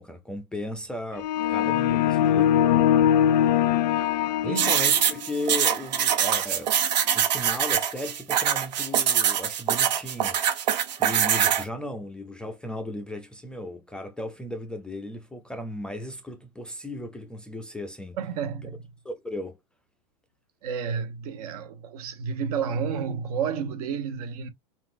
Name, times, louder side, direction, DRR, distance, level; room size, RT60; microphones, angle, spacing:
voice 1, 0.0-2.8 4.4-6.7 7.1-10.7 11.0-18.2 18.6-18.7 19.0-19.6, left 1 dB, 5° left, 0.4 m, -36 dB
sound 1, 1.2-5.1, left 10 dB, 80° left, 0.6 m, -22 dB
sound 2, 4.6-11.6, right 9 dB, 90° right, 1.1 m, -23 dB
voice 2, 18.2-18.8 20.6-24.5, right 6 dB, 60° right, 1.1 m, -31 dB
5.8 x 2.4 x 2.5 m
supercardioid pair, 150°, 21 cm